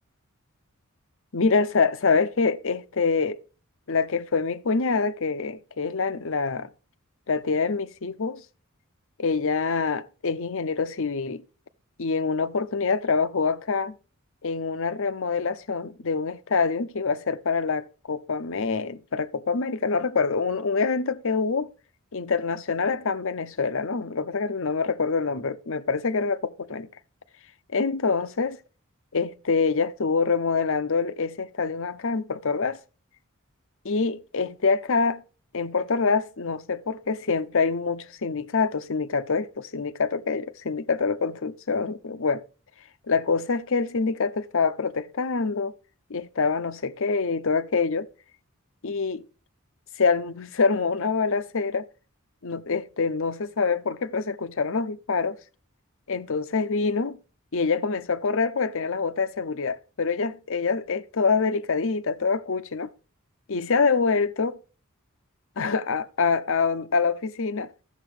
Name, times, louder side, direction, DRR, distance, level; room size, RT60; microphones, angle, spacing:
voice 1, 1.3-3.4 3.9-6.7 7.3-8.4 9.2-11.4 12.0-13.9 14.4-21.7 22.1-26.9 27.7-28.6 29.1-32.8 33.8-35.2 35.5-42.4 43.1-45.7 46.1-48.1 48.8-49.2 50.0-51.9 52.4-55.4 56.1-57.2 57.5-62.9 63.5-64.6 65.6-67.7, left 4 dB, 65° left, 0.8 m, -25 dB
13.5 x 7.3 x 4.9 m
head